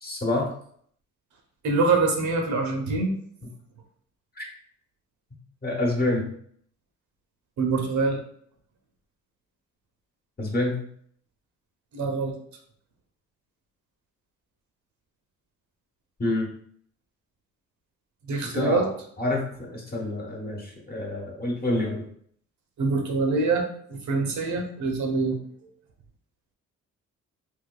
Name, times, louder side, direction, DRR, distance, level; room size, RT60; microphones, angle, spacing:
voice 1, 0.0-0.5 4.4-4.5 5.6-6.3 10.4-10.8 16.2-16.5 18.4-18.9 19.2-22.0, left 2 dB, 30° left, -1 dB, 1.1 m, -27 dB
voice 2, 1.6-3.1 7.6-8.2 11.9-12.3 18.3-18.9 22.8-25.4, right 3 dB, 70° right, 3 dB, 0.8 m, -24 dB
3.6 x 2.9 x 2.3 m, 0.63 s
cardioid pair, 90°, 30 cm